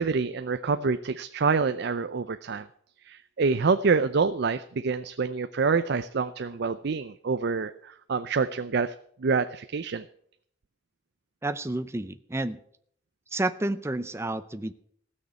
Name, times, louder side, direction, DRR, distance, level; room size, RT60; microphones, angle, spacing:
voice 1, 0.0-2.7 3.0-8.9 9.2-10.1, right 4 dB, 60° right, 11 dB, 0.5 m, -26 dB
voice 2, 11.4-12.6 13.3-14.7, right 2 dB, 15° right, 11 dB, 0.6 m, -30 dB
16.5 x 6.5 x 8.2 m, 0.65 s
head